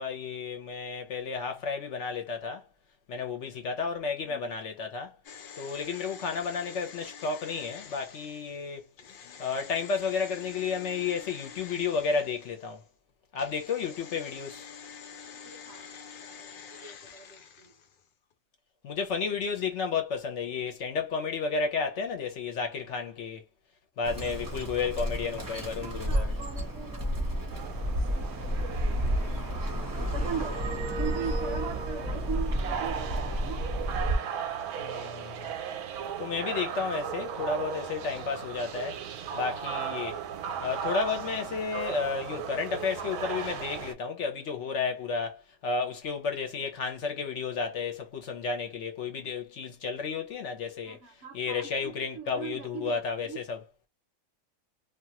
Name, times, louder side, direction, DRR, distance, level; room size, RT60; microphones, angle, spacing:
voice 1, 0.0-2.6 3.1-5.1 5.6-8.9 9.4-12.8 13.3-14.7 18.8-23.4 24.0-26.3 34.8-35.5 36.2-39.0 39.3-40.2 40.6-51.0 51.3-53.6, left 5 dB, 60° left, 1.0 m, -32 dB
sound 1, 5.2-12.8 13.3-18.1 18.3-18.4, left 7 dB, 85° left, 0.4 m, -47 dB
voice 2, 15.4-17.7 25.8-27.2 28.0-29.2 29.9-30.6 31.0-33.7 50.8-53.4, right 7 dB, 60° right, 0.8 m, -40 dB
Bird, 24.0-34.2, equal, 20° right, 0.6 m, -31 dB
sound 2, 27.5-43.9, right 7 dB, 90° right, 1.1 m, -37 dB
2.6 x 2.4 x 2.8 m
omnidirectional pair, 1.5 m